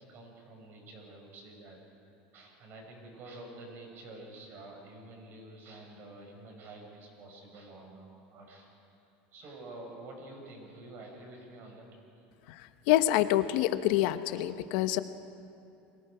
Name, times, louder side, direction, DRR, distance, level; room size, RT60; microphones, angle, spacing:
voice 1, 0.0-8.8 9.3-11.9, right 2 dB, 45° right, 1 dB, 5.8 m, -49 dB
voice 2, 12.5-15.0, left 14 dB, 70° left, 11 dB, 0.9 m, -27 dB
29.5 x 22.5 x 5.0 m, 2.8 s
supercardioid pair, 135°, 5 cm